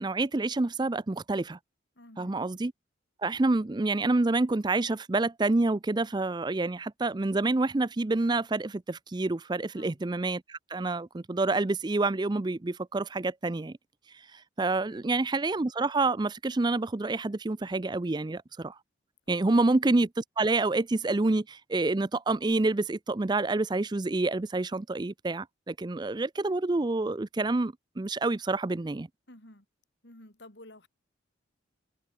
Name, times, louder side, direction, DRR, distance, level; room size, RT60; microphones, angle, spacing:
voice 1, 0.0-1.6 2.2-2.7 3.2-13.7 14.1-18.8 19.3-29.1, right 2 dB, 20° right, 0.5 m, -28 dB
voice 2, 1.9-2.5 9.7-10.0 14.8-15.1 19.5-19.7 29.3-29.7 30.0-30.9, left 1 dB, 60° left, 4.3 m, -52 dB
head